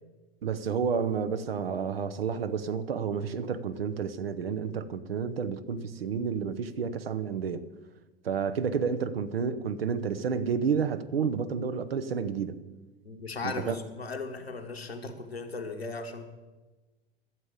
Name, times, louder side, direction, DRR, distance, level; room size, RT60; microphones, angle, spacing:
voice 1, 0.4-7.6 8.2-12.6 13.4-13.8, right 6 dB, 75° right, 0.9 m, -30 dB
voice 2, 13.0-16.2, left 3 dB, 85° left, 1.4 m, -37 dB
12.5 x 7.5 x 8.7 m
figure-of-eight pair, 80°, 30 cm